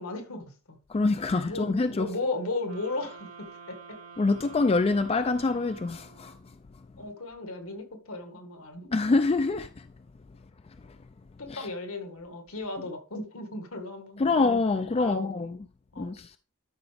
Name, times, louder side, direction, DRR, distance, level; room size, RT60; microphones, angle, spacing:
voice 1, 0.0-0.8 1.5-4.0 7.0-8.9 11.4-14.5 14.9-15.6 15.9-16.2, left 2 dB, 75° left, 2.0 m, -36 dB
voice 2, 0.9-2.1 4.2-6.4 8.9-9.9 11.5-11.7 14.2-15.6 16.0-16.3, left 3 dB, 25° left, 0.4 m, -25 dB
sound 1, 2.6-6.5, right 5 dB, 80° right, 1.1 m, -48 dB
12.5 x 5.8 x 3.5 m
head